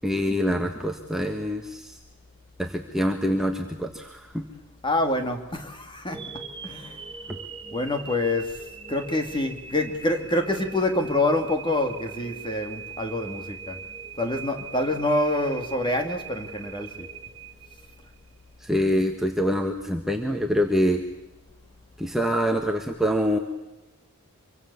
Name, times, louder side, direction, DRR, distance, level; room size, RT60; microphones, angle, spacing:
voice 1, 0.0-2.0 2.6-4.4 7.3-7.4 18.6-21.0 22.0-23.4, equal, ahead, 1.5 m, -25 dB
voice 2, 4.8-7.0 7.7-13.8 14.2-17.1, left 1 dB, 20° left, 2.7 m, -26 dB
sound 1, 6.1-18.2, right 6 dB, 25° right, 1.7 m, -41 dB
26.0 x 24.0 x 7.1 m
head